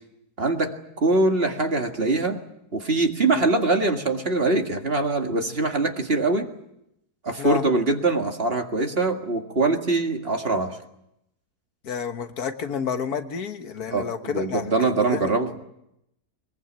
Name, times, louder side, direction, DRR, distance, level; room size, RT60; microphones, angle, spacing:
voice 1, 0.4-0.7 1.0-2.4 2.7-6.5 7.2-10.8 13.9-15.7, right 3 dB, 40° right, 4 dB, 2.1 m, -23 dB
voice 2, 11.8-15.3, left 6 dB, 70° left, 8 dB, 1.8 m, -30 dB
22.5 x 21.5 x 8.8 m, 0.82 s
omnidirectional pair, 1.7 m